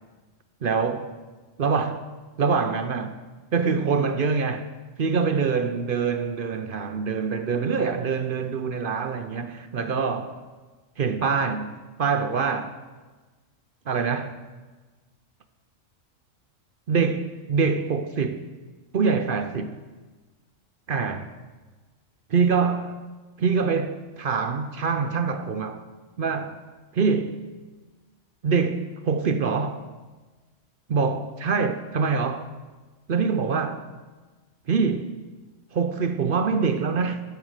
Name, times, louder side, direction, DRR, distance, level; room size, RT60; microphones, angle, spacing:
voice 1, 0.6-1.1 1.6-2.0 2.4-3.2 3.5-4.7 5.0-10.4 11.0-11.7 12.0-12.7 13.9-14.4 16.9-18.4 18.9-19.8 20.9-21.3 22.3-23.0 23.4-25.8 26.2-26.6 26.9-27.4 28.4-29.8 30.9-32.5 33.1-33.8 34.7-35.1 35.7-37.2, right 5 dB, 55° right, 0.7 m, -25 dB
12.5 x 7.6 x 6.4 m
omnidirectional pair, 1.3 m